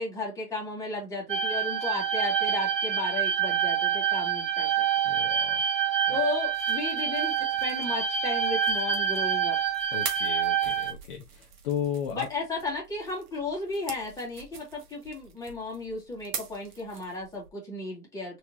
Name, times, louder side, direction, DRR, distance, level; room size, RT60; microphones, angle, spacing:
voice 1, 0.0-4.8 6.1-9.6 12.1-18.4, left 2 dB, 5° left, 2.0 m, -34 dB
sound 1, 1.3-10.9, right 8 dB, 55° right, 1.5 m, -27 dB
voice 2, 5.0-5.8 6.0-6.2 9.9-12.3, left 8 dB, 35° left, 0.9 m, -35 dB
sound 2, 6.3-17.5, right 6 dB, 30° right, 1.2 m, -44 dB
4.5 x 3.3 x 2.7 m
hypercardioid pair, 140°, 45 cm